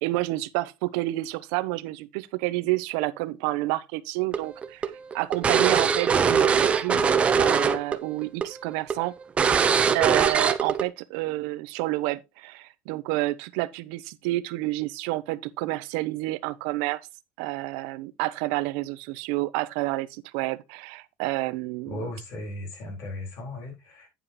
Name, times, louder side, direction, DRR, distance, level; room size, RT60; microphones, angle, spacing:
voice 1, 0.0-4.8 5.1-9.1 9.8-17.0 17.4-22.1, right 19 dB, 90° right, 0.8 m, -29 dB
sound 1, 4.3-8.0 8.2-8.4 8.9-9.0 9.4-10.8, right 6 dB, 25° right, 0.8 m, -21 dB
voice 2, 21.8-24.1, left 1 dB, 60° left, 4.3 m, -36 dB
9.5 x 8.0 x 3.0 m
cardioid pair, 150°, 5 cm